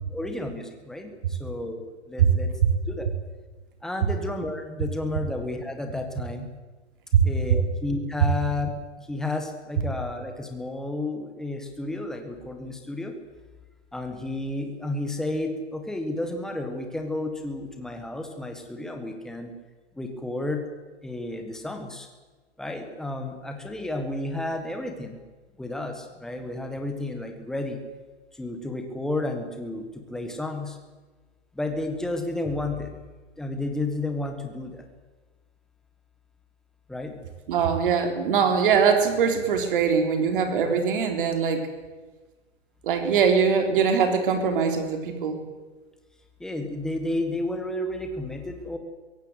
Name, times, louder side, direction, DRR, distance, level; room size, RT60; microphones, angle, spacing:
voice 1, 0.1-2.5 2.9-3.1 3.8-6.5 7.2-8.7 9.0-13.1 13.9-19.5 19.9-20.7 21.0-22.1 22.6-25.2 25.6-27.8 28.3-30.8 31.5-33.0 33.4-34.9 36.9-37.1 46.4-48.8, left 2 dB, ahead, 5 dB, 1.5 m, -32 dB
voice 2, 37.5-41.6 42.8-45.4, right 6 dB, 45° right, 6 dB, 3.8 m, -22 dB
22.5 x 17.0 x 8.1 m, 1.3 s
hypercardioid pair, 165°, 36 cm